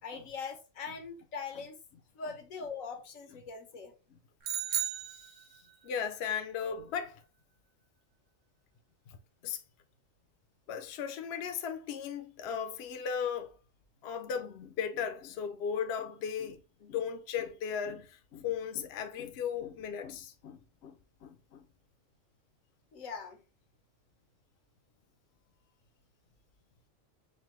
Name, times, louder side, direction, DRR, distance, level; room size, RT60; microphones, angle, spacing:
voice 1, 0.0-1.8 2.1-3.9 22.9-23.4, left 5 dB, 90° left, 1.3 m, -41 dB
sound 1, 4.4-5.9, right 9 dB, 75° right, 1.1 m, -35 dB
voice 2, 5.8-7.2 9.1-9.2 9.4-9.6 10.7-13.5 14.0-21.7, left 7 dB, 65° left, 0.8 m, -36 dB
5.3 x 2.2 x 3.2 m
omnidirectional pair, 1.3 m